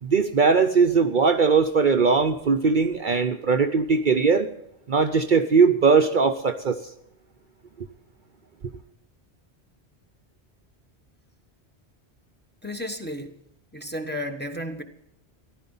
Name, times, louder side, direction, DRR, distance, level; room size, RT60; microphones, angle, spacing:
voice 1, 0.0-4.5 4.9-6.8, right 5 dB, 50° right, 6 dB, 0.8 m, -20 dB
voice 2, 12.6-13.4 13.7-14.8, left 1 dB, 10° left, 3 dB, 1.2 m, -33 dB
15.0 x 11.5 x 5.5 m, 0.76 s
omnidirectional pair, 1.1 m